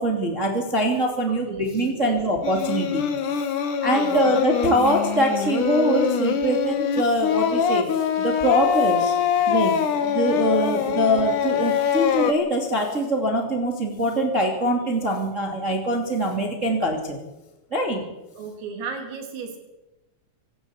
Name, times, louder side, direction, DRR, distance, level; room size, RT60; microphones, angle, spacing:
voice 1, 0.0-3.0 3.3-3.4 3.8-9.2 9.5-17.2 17.7-18.0, equal, 20° right, 1 dB, 2.0 m, -23 dB
voice 2, 1.3-2.2 3.9-4.2 10.6-10.7 18.4-19.6, right 5 dB, 80° right, 3 dB, 6.2 m, -35 dB
Singing, 2.4-12.3, left 8 dB, 60° left, 2.2 m, -24 dB
24.5 x 13.5 x 8.4 m, 1.0 s
omnidirectional pair, 5.9 m